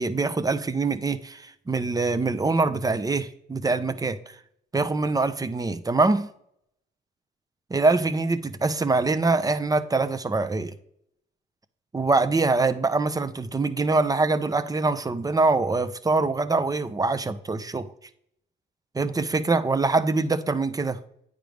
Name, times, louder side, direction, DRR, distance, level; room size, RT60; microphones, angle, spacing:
voice 1, 0.0-4.4 4.7-6.3 7.7-10.7 11.9-17.9 18.9-21.0, right 3 dB, 20° right, 0.5 m, -24 dB
9.0 x 5.2 x 3.4 m
cardioid pair, 90°, 20 cm